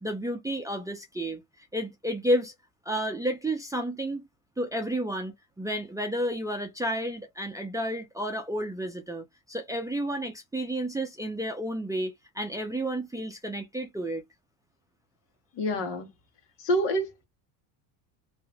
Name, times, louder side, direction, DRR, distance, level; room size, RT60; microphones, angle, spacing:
voice 1, 0.0-2.5 2.9-4.2 4.6-14.2, right 1 dB, 5° right, 0.7 m, -31 dB
voice 2, 15.6-16.1 16.6-17.2, equal, 60° left, 1.5 m, -27 dB
3.0 x 2.6 x 3.4 m
supercardioid pair, 100°, 48 cm